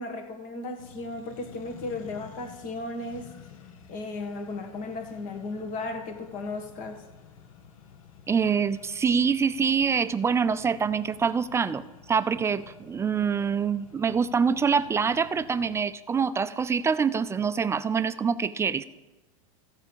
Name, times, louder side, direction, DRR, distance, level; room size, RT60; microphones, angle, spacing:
voice 1, 0.0-3.3 3.9-7.0, left 2 dB, 50° left, 5 dB, 1.7 m, -35 dB
Accelerating revving vroom, 0.8-15.8, left 7 dB, 70° left, 1.1 m, -51 dB
voice 2, 8.3-18.8, right 6 dB, 15° right, 13 dB, 0.5 m, -25 dB
14.0 x 4.9 x 7.0 m, 1.1 s
hypercardioid pair, 95°, 18 cm